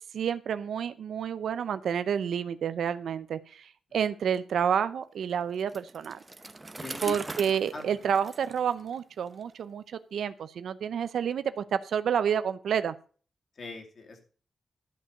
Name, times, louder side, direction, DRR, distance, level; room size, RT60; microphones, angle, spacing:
voice 1, 0.1-6.2 7.0-12.9, right 8 dB, 90° right, 13 dB, 0.6 m, -29 dB
Bicycle, 5.6-9.4, right 2 dB, 20° right, 0.8 m, -42 dB
voice 2, 6.8-7.2 7.7-7.9 13.6-14.2, left 4 dB, 50° left, 2 dB, 2.6 m, -40 dB
12.5 x 5.5 x 6.4 m, 0.41 s
wide cardioid pair, 120°, 0 cm